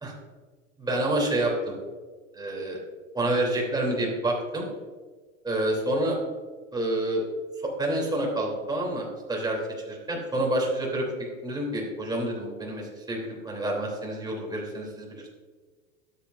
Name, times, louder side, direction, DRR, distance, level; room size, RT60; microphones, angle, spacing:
voice 1, 0.8-1.7 2.3-2.8 3.1-4.6 5.4-6.2 6.7-7.2 7.8-9.6 9.8-15.3, right 1 dB, 10° right, -2 dB, 3.2 m, -28 dB
13.0 x 8.4 x 2.6 m, 1.4 s
hypercardioid pair, 100°, 37 cm